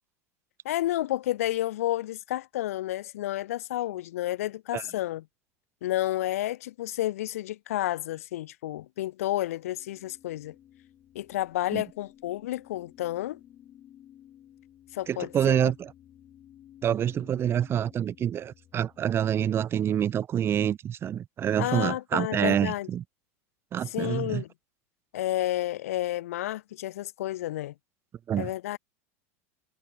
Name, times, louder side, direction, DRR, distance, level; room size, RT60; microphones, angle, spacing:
voice 1, 0.6-5.2 5.8-10.5 11.1-13.4 14.9-15.7 21.6-22.9 23.9-24.5 25.1-27.7 28.4-28.8, left 14 dB, 85° left, 0.7 m, -31 dB
sound 1, 9.4-19.5, left 11 dB, 40° left, 7.1 m, -55 dB
voice 2, 15.1-15.9 16.8-23.0 23.7-24.4 28.3-28.5, right 9 dB, 30° right, 0.5 m, -27 dB
hypercardioid pair, 100°, 8 cm